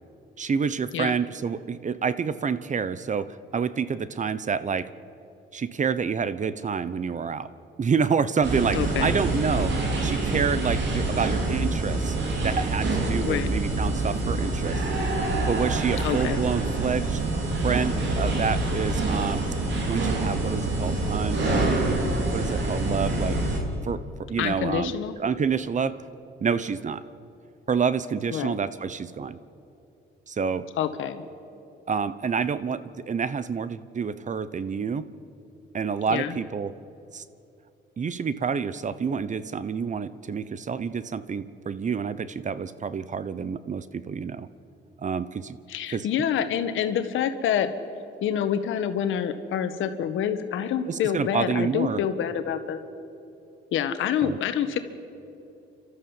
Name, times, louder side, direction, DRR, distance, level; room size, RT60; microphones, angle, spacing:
voice 1, 0.4-4.9 5.5-7.5 7.8-9.7 10.0-12.2 12.4-14.8 15.5-17.2 17.6-19.5 19.8-21.8 22.3-23.4 23.8-24.0 24.3-26.0 26.4-27.0 27.7-29.4 30.3-30.6 31.9-35.1 35.7-36.7 37.1-37.2 38.0-44.5 45.0-45.6 45.9-46.1 50.9-52.0 54.2-54.4, right 6 dB, 40° right, 15 dB, 0.9 m, -28 dB
sound 1, 8.4-23.6, right 2 dB, 65° right, 3.7 m, -26 dB
voice 2, 8.7-9.1 13.3-13.5 16.0-16.4 24.4-25.2 28.3-28.5 30.8-31.2 36.1-36.4 45.7-47.7 48.2-52.8 53.7-54.8, left 9 dB, 80° left, 9 dB, 1.5 m, -27 dB
30.0 x 13.0 x 7.3 m, 2.8 s
cardioid pair, 90°, 20 cm